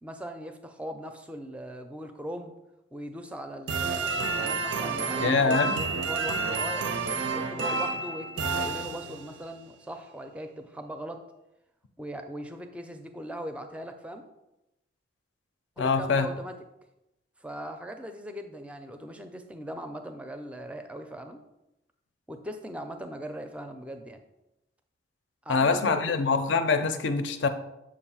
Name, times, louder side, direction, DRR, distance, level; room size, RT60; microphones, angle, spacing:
voice 1, 0.0-2.5 2.9-7.0 7.3-11.2 12.0-14.2 15.8-16.5 17.4-21.4 22.3-24.2 25.4-26.2, equal, 5° right, 6 dB, 0.4 m, -39 dB
sound 1, 3.7-9.4, right 4 dB, 75° right, 0.5 m, -30 dB
voice 2, 5.2-5.8 15.8-16.3 25.5-27.5, left 4 dB, 75° left, 9 dB, 0.5 m, -24 dB
7.2 x 2.5 x 5.6 m, 0.92 s
head